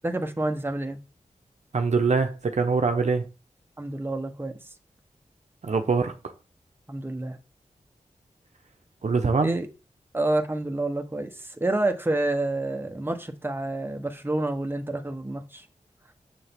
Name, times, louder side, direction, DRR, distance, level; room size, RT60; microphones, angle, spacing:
voice 1, 0.0-1.0 3.8-4.6 6.9-7.4 9.4-9.7 10.1-15.6, right 2 dB, 15° right, 1.3 m, -28 dB
voice 2, 1.7-3.3 5.6-6.2 9.0-9.6, right 4 dB, 65° right, 1.0 m, -23 dB
7.0 x 6.6 x 3.7 m
wide cardioid pair, 65°, 13 cm